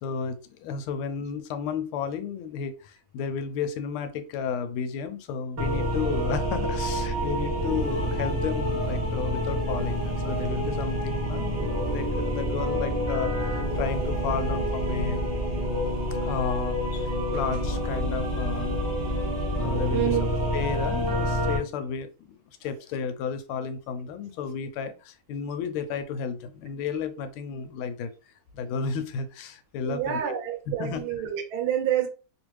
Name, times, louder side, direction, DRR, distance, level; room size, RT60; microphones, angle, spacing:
voice 1, 0.0-15.3 16.2-18.7 19.6-20.2 20.5-28.1 28.5-30.4 30.8-31.0, left 6 dB, 80° left, 1.4 m, -33 dB
sound 1, 5.6-21.6, equal, 45° right, 0.8 m, -28 dB
voice 2, 19.9-20.3 29.8-32.1, right 10 dB, 80° right, 1.4 m, -28 dB
3.3 x 2.5 x 3.0 m
omnidirectional pair, 2.3 m